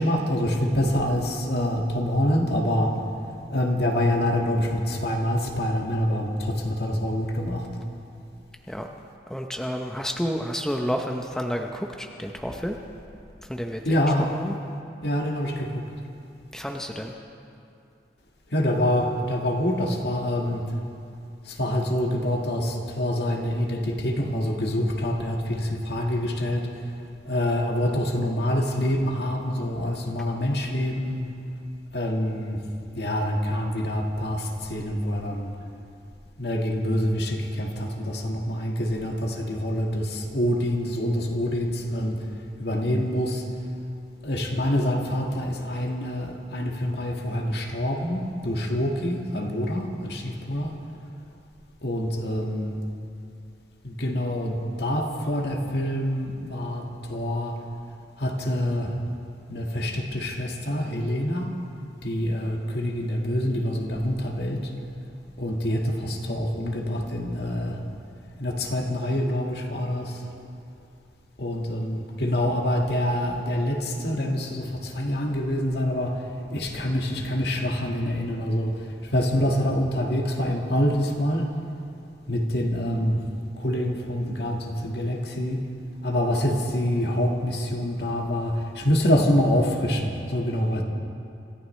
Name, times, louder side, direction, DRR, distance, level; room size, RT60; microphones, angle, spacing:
voice 1, 0.0-3.0 3.5-7.7 13.9-14.3 15.0-15.8 18.5-20.7 21.5-26.7 27.3-31.2 31.9-32.6 32.9-35.5 36.4-42.3 42.6-43.4 44.2-50.7 51.8-52.8 53.8-57.6 58.2-58.9 59.5-61.5 62.0-64.7 65.4-67.8 68.4-70.2 71.4-76.2 76.5-81.5 82.3-83.2 83.6-85.6 86.0-90.8, left 1 dB, 65° left, 1 dB, 1.7 m, -26 dB
voice 2, 9.3-12.8 13.5-13.8 14.2-14.5 16.5-17.1, equal, 5° left, 2 dB, 0.7 m, -30 dB
26.5 x 14.5 x 3.2 m, 2.6 s
head